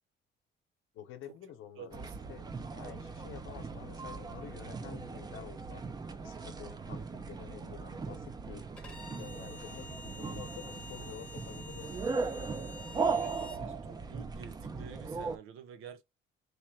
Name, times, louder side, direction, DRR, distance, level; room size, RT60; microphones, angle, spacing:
voice 1, 0.9-5.8 6.2-8.6 9.2-12.1, left 10 dB, 80° left, 0.9 m, -49 dB
voice 2, 1.8-2.3 12.9-16.0, right 8 dB, 90° right, 0.7 m, -49 dB
sound 1, 1.9-15.4, right 4 dB, 20° right, 0.4 m, -38 dB
Bowed string instrument, 8.8-13.6, left 3 dB, 5° left, 0.8 m, -49 dB
3.2 x 3.1 x 3.3 m
cardioid pair, 160°, 21 cm